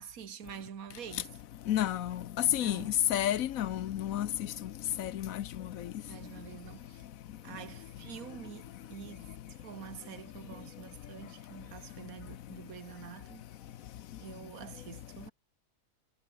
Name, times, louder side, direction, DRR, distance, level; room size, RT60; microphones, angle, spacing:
voice 1, 0.0-1.4 2.6-2.9 6.1-7.1 7.4-9.3 9.6-13.5 14.2-15.3, right 8 dB, 65° right, 1.8 m, -47 dB
voice 2, 1.7-4.3 5.0-5.4, left 11 dB, 65° left, 1.1 m, -30 dB
omnidirectional pair, 1.6 m